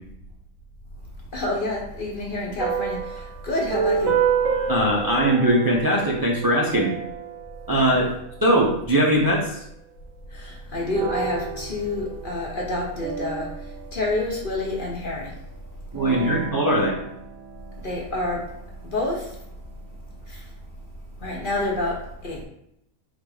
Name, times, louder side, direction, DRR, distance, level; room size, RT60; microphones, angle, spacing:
voice 1, 1.3-4.1 7.9-8.0 10.3-13.5 13.9-15.3 17.8-18.5 18.8-19.3 20.3-20.4 21.2-22.4, left 2 dB, 45° left, -2 dB, 0.7 m, -28 dB
sound 1, 2.6-8.5 10.9-14.7 15.9-18.6, right 7 dB, 70° right, 1.0 m, -30 dB
voice 2, 4.7-6.9 7.7-8.1 8.4-9.6 15.9-17.0, right 1 dB, 35° right, -3 dB, 0.3 m, -20 dB
4.0 x 2.5 x 4.7 m, 0.78 s
omnidirectional pair, 1.5 m